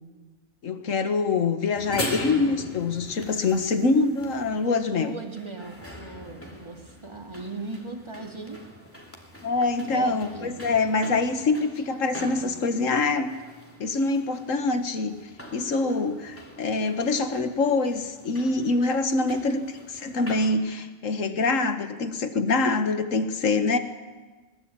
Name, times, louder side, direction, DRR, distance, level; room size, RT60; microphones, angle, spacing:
voice 1, 0.6-5.1 9.4-13.3 13.8-15.1 15.5-23.8, left 3 dB, 70° left, 9 dB, 1.8 m, -25 dB
sound 1, 1.7-20.5, left 1 dB, 10° left, 2.8 m, -41 dB
voice 2, 4.9-8.6 9.9-10.5, right 3 dB, 20° right, 3 dB, 2.5 m, -38 dB
21.0 x 19.5 x 8.8 m, 1.3 s
omnidirectional pair, 1.4 m